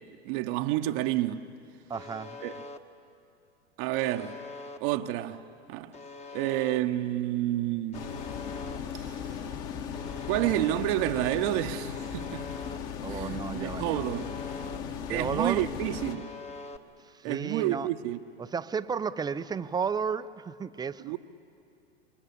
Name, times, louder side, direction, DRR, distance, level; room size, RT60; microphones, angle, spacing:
voice 1, 0.0-1.5 2.4-2.5 3.8-4.4 4.8-5.9 6.3-8.2 8.9-9.2 10.2-12.5 13.1-14.3 15.1-16.3 17.2-18.2 21.0-21.2, right 14 dB, 50° right, 1.0 m, -30 dB
Alarm, 1.9-2.8 3.9-4.8 5.9-6.8 7.9-8.8 9.9-10.8 11.9-12.8 13.9-14.8 15.9-16.8, left 3 dB, 20° left, 1.4 m, -43 dB
voice 2, 1.9-2.4 13.0-14.0 15.1-15.7 17.1-17.9 18.4-21.2, right 6 dB, 10° right, 0.6 m, -33 dB
sound 1, 7.9-16.2, left 7 dB, 45° left, 2.3 m, -37 dB
27.0 x 23.5 x 8.4 m
hypercardioid pair, 100°, 34 cm